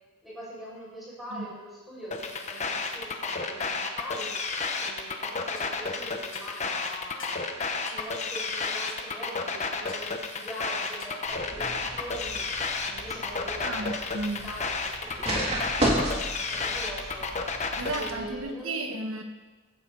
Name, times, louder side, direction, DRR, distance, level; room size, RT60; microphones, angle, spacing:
voice 1, 0.2-4.4 4.8-7.4 7.7-12.5 12.8-14.0 14.4-15.5 16.3-17.3 17.9-18.8, equal, ahead, -7 dB, 6.4 m, -42 dB
sound 1, 2.1-18.1, left 4 dB, 35° left, 1.2 m, -31 dB
sound 2, 5.6-5.7 6.3-6.5 7.2-7.5 7.9-8.1 8.9-9.1 9.9-10.1 11.0-11.2, left 5 dB, 65° left, 1.8 m, -46 dB
sound 3, 11.3-18.4, right 1 dB, 30° right, 3.1 m, -33 dB
voice 2, 13.6-14.5 17.8-19.2, right 2 dB, 75° right, 5 dB, 1.6 m, -33 dB
15.5 x 15.5 x 4.1 m, 1.2 s
head